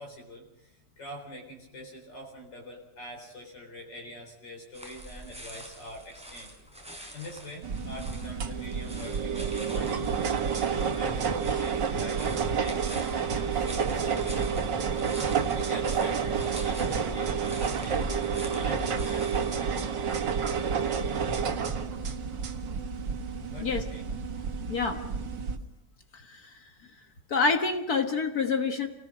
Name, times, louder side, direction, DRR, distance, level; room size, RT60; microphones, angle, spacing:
voice 1, 0.0-6.5 7.1-10.1 10.7-14.7 15.5-18.0 18.5-19.7 23.5-24.1, left 1 dB, 90° left, 0 dB, 4.9 m, -44 dB
sound 1, 4.7-19.6, right 1 dB, 5° right, 4.7 m, -45 dB
sound 2, 7.6-25.6, right 6 dB, 90° right, 2.2 m, -29 dB
voice 2, 24.7-25.0 26.1-26.6 27.3-28.9, left 4 dB, 60° left, 6 dB, 1.9 m, -27 dB
28.0 x 18.5 x 6.2 m, 0.84 s
omnidirectional pair, 1.9 m